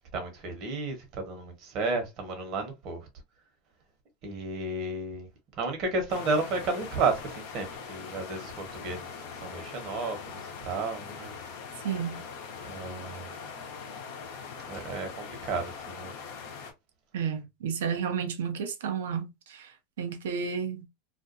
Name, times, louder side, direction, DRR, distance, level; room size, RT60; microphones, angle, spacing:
voice 1, 0.1-3.0 4.2-5.3 5.6-9.1 9.4-11.3 12.6-13.3 14.7-16.1, right 3 dB, 50° right, 1.1 m, -32 dB
sound 1, 6.1-16.7, left 5 dB, 70° left, 0.7 m, -42 dB
voice 2, 11.8-12.2 17.1-19.7 20.0-20.8, right 7 dB, 80° right, 0.7 m, -32 dB
2.5 x 2.3 x 2.5 m
hypercardioid pair, 100°, 0 cm